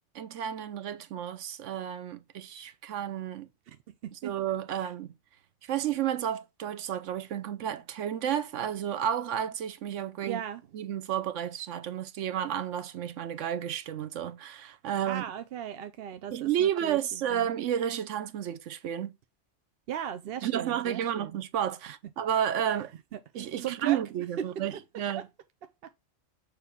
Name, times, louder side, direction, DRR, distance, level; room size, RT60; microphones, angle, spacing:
voice 1, 0.1-3.5 4.1-5.1 5.6-10.4 10.7-15.2 16.3-19.1 20.4-22.9 23.3-25.3, right 10 dB, 90° right, 1.0 m, -31 dB
voice 2, 10.2-10.6 15.1-17.0 17.3-17.5 19.9-21.4 23.1-24.0 24.4-24.5 25.2-25.3, right 9 dB, 60° right, 0.7 m, -37 dB
6.8 x 2.9 x 5.8 m
omnidirectional pair, 1.2 m